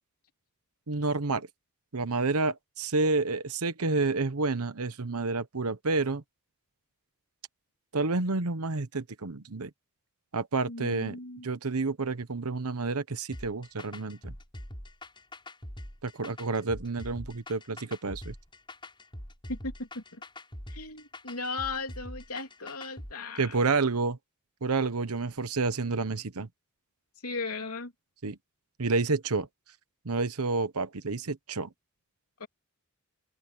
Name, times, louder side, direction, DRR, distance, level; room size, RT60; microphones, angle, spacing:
voice 1, 0.9-1.5 1.9-6.2 7.9-9.7 10.3-11.2 11.4-14.3 16.0-18.3 23.4-24.2 24.6-26.5 28.2-28.4 28.8-29.5 30.0-31.7, right 3 dB, 85° right, 1.0 m, -29 dB
voice 2, 10.7-11.5 19.5-20.2 20.7-23.6 27.2-27.9 32.4-32.5, left 3 dB, 85° left, 3.3 m, -37 dB
sound 1, 13.3-23.1, left 1 dB, 20° left, 6.8 m, -43 dB
open air
head